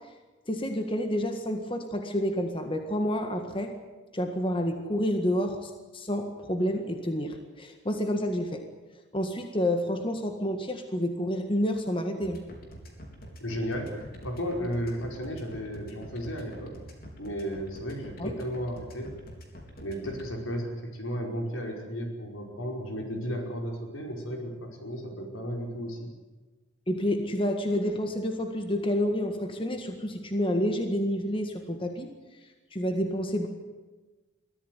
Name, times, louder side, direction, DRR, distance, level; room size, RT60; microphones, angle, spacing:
voice 1, 0.5-3.7 4.1-8.6 9.1-12.4 18.2-18.3 26.9-32.1 32.7-33.5, equal, 25° left, 5 dB, 1.8 m, -29 dB
sound 1, 12.2-20.3, equal, 50° left, 3.9 m, -45 dB
voice 2, 13.4-16.8 17.2-19.1 19.8-26.1, equal, 90° left, 2 dB, 5.1 m, -34 dB
22.5 x 15.0 x 9.6 m, 1.2 s
head